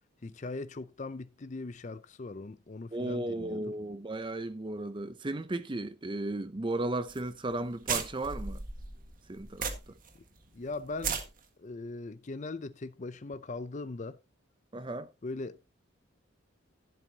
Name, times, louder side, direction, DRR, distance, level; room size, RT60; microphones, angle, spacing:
voice 1, 0.2-3.6 10.5-11.2 11.6-14.2 15.2-15.6, left 3 dB, 35° left, 0.5 m, -40 dB
voice 2, 2.9-8.6 9.3-9.7 14.7-15.1, right 2 dB, 25° right, 0.5 m, -35 dB
sound 1, 7.1-7.2 7.5-7.6 7.9-10.1 10.4-10.5 10.9-11.2, right 6 dB, 45° right, 1.7 m, -34 dB
14.5 x 7.7 x 2.8 m
head